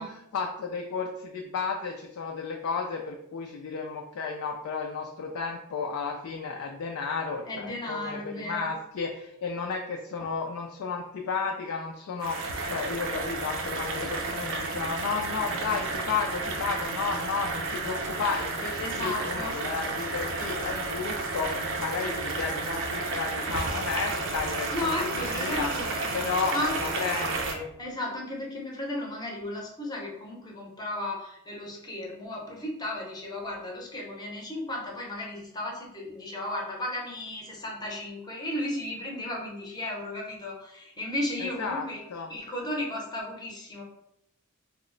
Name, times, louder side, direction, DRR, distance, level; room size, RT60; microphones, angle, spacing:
voice 1, 0.0-25.7 26.1-27.7 41.4-41.8 42.1-42.3, left 5 dB, 70° left, 2 dB, 0.3 m, -33 dB
voice 2, 7.4-8.7 18.8-19.5 24.7-26.2 26.5-26.8 27.8-42.0 42.3-43.8, left 1 dB, 20° left, -1 dB, 0.7 m, -34 dB
sound 1, 12.2-27.5, right 3 dB, 60° right, 0.5 m, -32 dB
3.0 x 2.1 x 3.7 m, 0.78 s
head